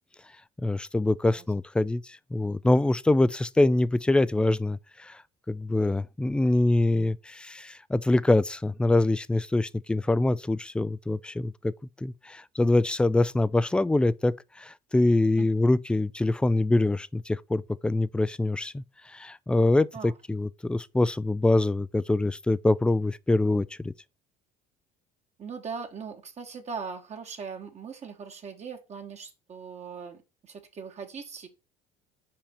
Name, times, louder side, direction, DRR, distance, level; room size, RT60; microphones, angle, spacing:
voice 1, 0.6-2.0 2.3-5.2 5.5-11.7 12.0-23.9, left 2 dB, 5° left, 0.3 m, -24 dB
voice 2, 25.4-31.5, right 5 dB, 35° right, 1.2 m, -40 dB
5.8 x 5.0 x 4.2 m
cardioid pair, 110°, 19 cm